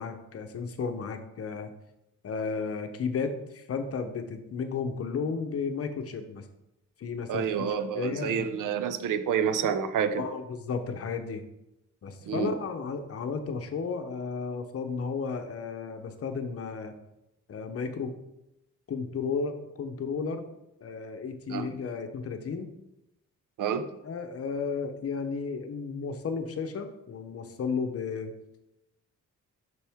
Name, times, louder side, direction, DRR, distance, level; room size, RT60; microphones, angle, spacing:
voice 1, 0.0-1.7 2.2-6.5 7.0-7.5 7.9-8.5 10.2-11.4 12.0-16.9 17.5-18.1 18.9-20.4 20.8-22.7 24.0-28.3, left 5 dB, 50° left, 7 dB, 0.7 m, -33 dB
voice 2, 7.3-10.3 12.3-12.5 21.5-21.7 23.6-23.9, right 7 dB, 80° right, 11 dB, 0.6 m, -28 dB
7.4 x 6.2 x 3.5 m, 0.89 s
wide cardioid pair, 150°, 31 cm